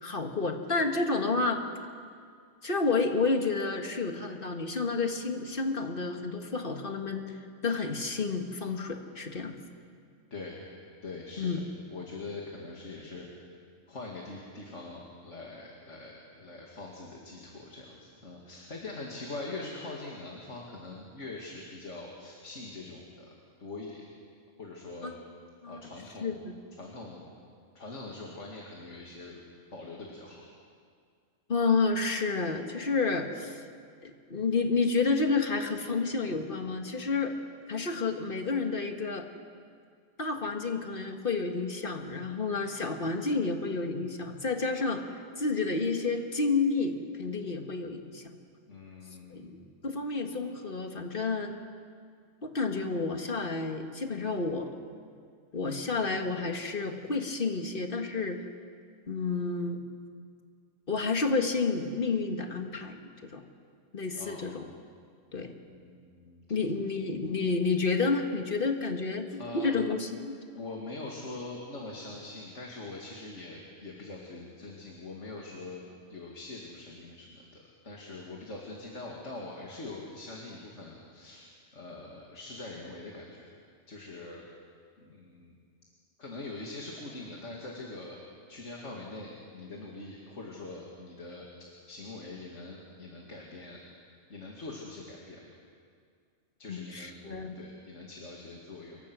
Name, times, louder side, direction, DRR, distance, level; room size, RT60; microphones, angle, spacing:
voice 1, 0.0-1.6 2.6-7.3 7.6-9.6 11.4-11.6 25.0-25.1 25.6-25.8 26.2-26.5 31.5-33.6 34.0-37.3 37.7-39.2 40.2-45.0 45.4-48.2 49.3-51.5 52.4-54.7 55.5-58.4 59.1-59.8 60.9-63.4 63.9-64.7 65.3-65.5 66.5-70.4 96.7-97.6, left 4 dB, 40° left, 4 dB, 1.8 m, -30 dB
voice 2, 11.0-11.6 11.9-13.3 13.9-23.3 23.6-24.0 24.6-25.1 25.7-26.4 26.8-27.3 27.7-29.4 29.7-30.4 35.8-35.9 48.7-49.6 64.2-64.7 65.7-66.6 69.4-69.9 70.5-75.8 76.1-81.5 81.7-83.5 83.9-84.4 85.0-85.6 86.2-88.2 88.5-91.4 91.9-93.8 94.3-95.4 96.6-97.2 97.5-99.0, left 2 dB, 60° left, -2 dB, 2.7 m, -43 dB
27.0 x 23.0 x 6.3 m, 2.1 s
omnidirectional pair, 1.4 m